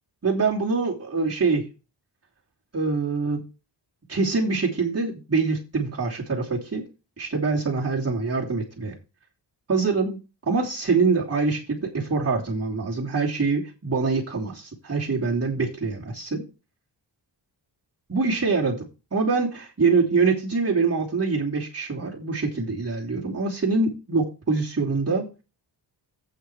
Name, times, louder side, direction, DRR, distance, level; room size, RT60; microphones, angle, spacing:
voice 1, 0.2-1.7 2.7-3.4 4.1-6.9 7.2-8.9 9.7-10.2 10.5-16.5 18.1-18.8 19.1-25.3, right 4 dB, 35° right, -4 dB, 2.9 m, -24 dB
8.1 x 8.0 x 4.8 m, 0.30 s
wide cardioid pair, 110°, 45 cm